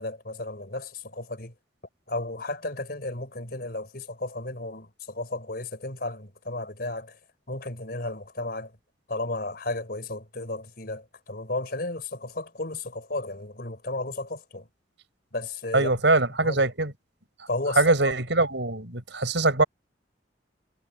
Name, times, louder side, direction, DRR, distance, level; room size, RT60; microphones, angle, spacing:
voice 1, 0.0-1.5 2.1-7.2 7.5-8.7 9.1-14.7 15.3-15.9 16.4-16.6 17.5-18.1, left 2 dB, 50° left, 4.3 m, -33 dB
voice 2, 15.7-16.9 17.8-19.6, right 2 dB, 70° right, 5.2 m, -22 dB
head